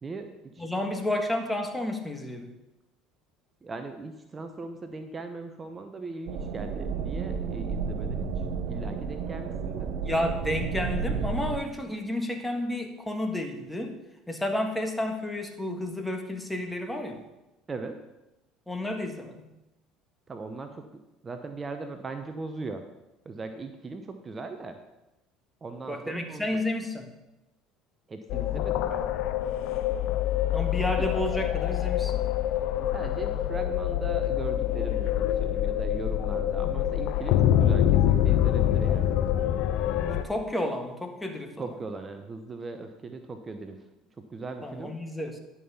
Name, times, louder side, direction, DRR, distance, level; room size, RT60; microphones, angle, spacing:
voice 1, 0.0-0.7 3.6-8.3 8.7-9.9 17.7-18.0 20.3-22.8 23.2-24.8 25.6-26.6 28.1-29.0 31.0-31.1 32.7-39.2 41.6-43.8 44.2-44.9, right 3 dB, 30° right, 7 dB, 0.8 m, -39 dB
voice 2, 0.6-2.5 10.0-14.0 14.3-17.2 18.7-19.4 25.9-27.1 30.5-32.2 40.0-41.6 44.6-45.4, left 1 dB, 10° left, 5 dB, 1.6 m, -31 dB
sound 1, 6.3-11.6, right 5 dB, 65° right, 0.8 m, -32 dB
sound 2, 28.3-40.2, left 11 dB, 65° left, 0.6 m, -25 dB
11.0 x 5.7 x 5.6 m, 0.98 s
hypercardioid pair, 70°, 0 cm